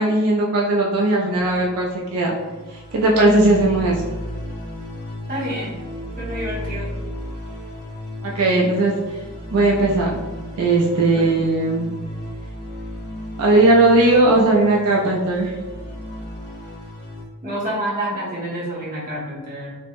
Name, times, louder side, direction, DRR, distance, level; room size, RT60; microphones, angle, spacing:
voice 1, 0.0-2.3 2.9-4.0 8.2-8.9 9.5-10.2 10.6-11.9 13.4-15.5, right 2 dB, 75° right, -2 dB, 0.4 m, -17 dB
sound 1, 1.3-17.2, left 1 dB, 85° left, 0.7 m, -34 dB
voice 2, 5.3-5.8 6.2-6.9 11.1-11.4 17.4-19.8, right 1 dB, 40° right, -7 dB, 0.9 m, -28 dB
3.3 x 2.1 x 2.4 m, 1.2 s
head